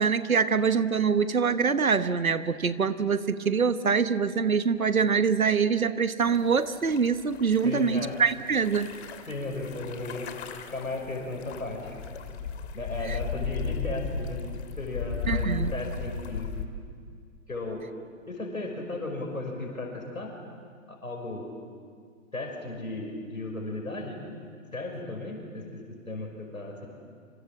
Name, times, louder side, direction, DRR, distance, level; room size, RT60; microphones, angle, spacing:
voice 1, 0.0-8.9 13.1-13.2 15.3-15.7, right 5 dB, 90° right, 13 dB, 1.3 m, -24 dB
sound 1, 6.2-16.7, left 5 dB, 50° left, 2.5 m, -36 dB
voice 2, 7.6-8.2 9.3-10.3 10.7-12.2 12.7-14.4 14.8-16.5 17.5-17.8 18.3-20.3 20.9-21.5 22.3-24.2 24.7-26.9, left 2 dB, 90° left, 1 dB, 5.8 m, -35 dB
27.5 x 26.0 x 7.6 m, 2.1 s
figure-of-eight pair, 125°, 41 cm